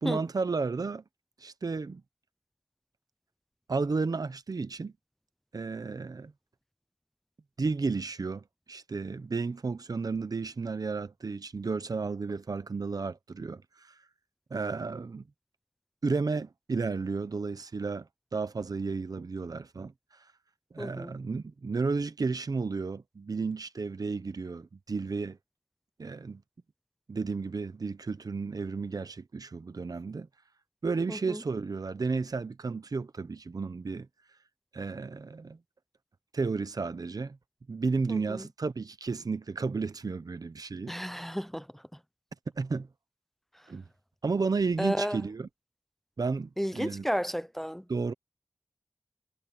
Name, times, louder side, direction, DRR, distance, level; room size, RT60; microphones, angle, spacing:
voice 1, 0.0-1.0 1.4-2.0 3.7-4.9 5.5-6.3 7.6-13.9 14.5-15.2 16.0-18.1 18.3-19.9 20.7-25.4 26.0-26.4 27.1-30.3 30.8-34.1 34.7-35.6 36.3-37.4 37.7-41.0 42.6-42.9 43.7-43.8 44.2-45.5 46.2-47.0 47.9-48.1, right 4 dB, 80° right, 0.9 m, -32 dB
voice 2, 20.8-21.2 31.1-31.4 38.1-38.5 40.9-41.8 44.8-45.2 46.6-47.8, equal, 5° left, 0.6 m, -33 dB
wide cardioid pair, 60°, 6 cm